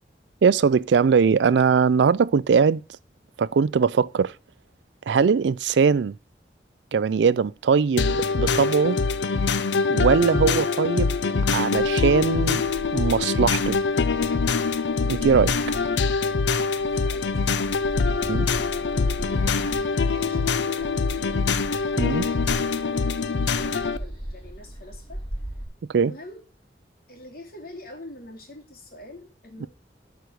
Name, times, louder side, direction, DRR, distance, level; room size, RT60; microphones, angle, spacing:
voice 1, 0.4-2.8 3.4-4.3 5.1-6.1 6.9-9.0 9.9-11.1 11.5-12.6 12.9-13.8 15.2-15.5 18.3-18.5 22.0-22.3 25.9-26.1 29.6-29.7, right 6 dB, 80° right, 0.4 m, -20 dB
sound 1, 8.0-24.0, left 4 dB, 85° left, 0.6 m, -24 dB
sound 2, 11.7-25.6, right 1 dB, 25° left, 3.0 m, -39 dB
voice 2, 15.0-15.6 16.9-18.8 19.2-23.0 23.3-25.2 26.0-26.4 27.1-29.7, left 1 dB, 55° left, 2.7 m, -45 dB
12.0 x 4.7 x 6.2 m
head